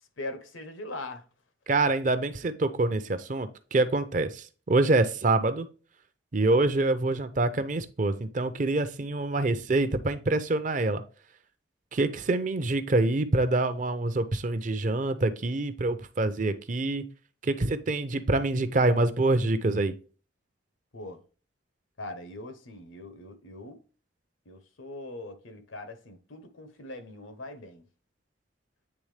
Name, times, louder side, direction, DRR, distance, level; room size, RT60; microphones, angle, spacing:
voice 1, 0.2-1.3 20.9-21.2 22.0-23.8 24.5-27.8, left 2 dB, 85° left, 0.9 m, -41 dB
voice 2, 1.7-5.7 6.3-11.0 11.9-17.1 17.4-19.9, right 2 dB, 40° right, 0.5 m, -26 dB
8.5 x 3.5 x 3.2 m
head